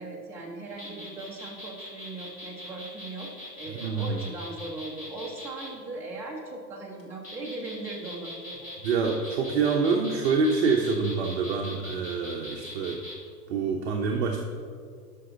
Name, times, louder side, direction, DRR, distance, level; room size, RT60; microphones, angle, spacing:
voice 1, 0.0-8.7, right 2 dB, 5° right, -5 dB, 1.0 m, -39 dB
sound 1, 0.7-5.7 7.0-13.2, left 1 dB, 15° left, 1.2 m, -42 dB
voice 2, 3.7-4.2 8.8-13.0 13.5-14.4, right 4 dB, 45° right, 0 dB, 0.9 m, -26 dB
11.5 x 6.1 x 3.9 m, 2.1 s
hypercardioid pair, 145°, 49 cm